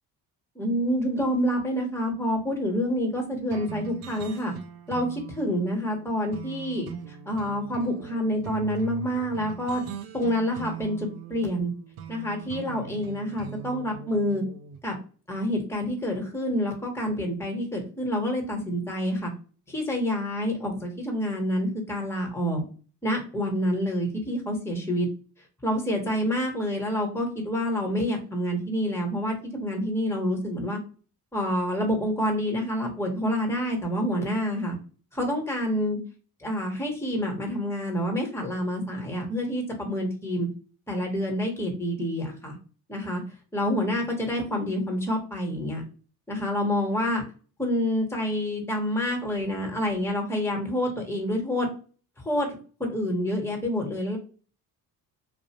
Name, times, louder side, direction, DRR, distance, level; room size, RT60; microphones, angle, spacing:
voice 1, 0.5-4.5 4.9-9.8 10.1-11.7 12.1-14.4 14.8-14.9 15.3-19.3 19.7-22.6 23.0-25.1 25.6-30.8 31.3-34.8 35.1-36.0 36.4-40.5 40.9-42.6 42.9-43.2 43.5-45.8 46.3-47.2 47.6-51.7 52.2-54.2, equal, 5° left, 1 dB, 1.1 m, -28 dB
sound 1, 3.5-14.8, right 8 dB, 50° right, 0.6 m, -41 dB
2.5 x 2.1 x 2.9 m, 0.38 s
hypercardioid pair, 50°, 46 cm